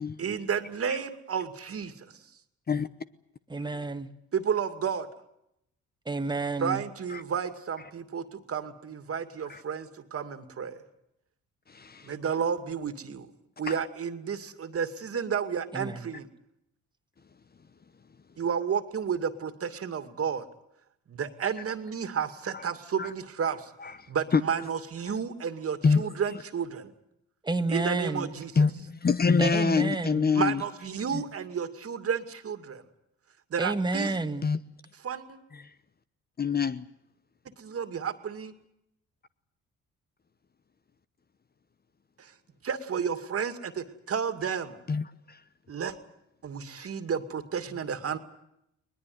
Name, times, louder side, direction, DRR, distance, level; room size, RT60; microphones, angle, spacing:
voice 1, 0.2-1.9 4.3-5.1 6.6-10.8 12.1-13.3 13.6-16.3 18.4-20.5 21.1-23.7 24.1-26.9 27.7-28.5 30.4-32.8 33.5-34.1 35.0-35.4 37.6-38.5 42.2-42.3 42.6-44.8 45.7-46.0 46.4-48.2, right 7 dB, 50° right, 2.4 m, -32 dB
voice 2, 3.5-4.1 6.0-6.8 15.7-16.1 27.4-28.3 29.4-30.3 33.6-34.5, right 2 dB, 15° right, 1.7 m, -30 dB
voice 3, 23.8-24.4 25.1-25.2 25.8-26.1 28.6-30.6 31.1-31.2 34.4-34.6 35.6-35.7 36.4-36.9 44.9-45.4 46.8-46.9, left 5 dB, 30° left, 1.0 m, -26 dB
21.0 x 20.5 x 9.6 m
cardioid pair, 90°, 30 cm